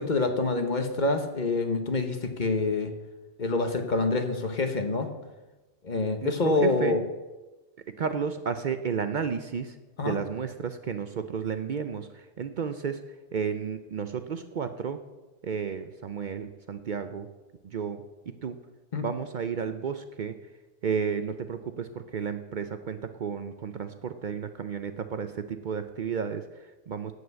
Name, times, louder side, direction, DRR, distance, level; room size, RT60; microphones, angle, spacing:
voice 1, 0.0-2.9 3.4-5.1 5.8-7.0 10.0-10.1 18.9-19.1, left 3 dB, 45° left, 6 dB, 1.1 m, -26 dB
voice 2, 6.2-7.0 7.9-15.0 15.4-17.3 17.6-18.6 19.0-20.4 20.8-27.1, right 6 dB, 55° right, 9 dB, 0.6 m, -32 dB
8.0 x 7.7 x 8.0 m, 1.1 s
omnidirectional pair, 1.1 m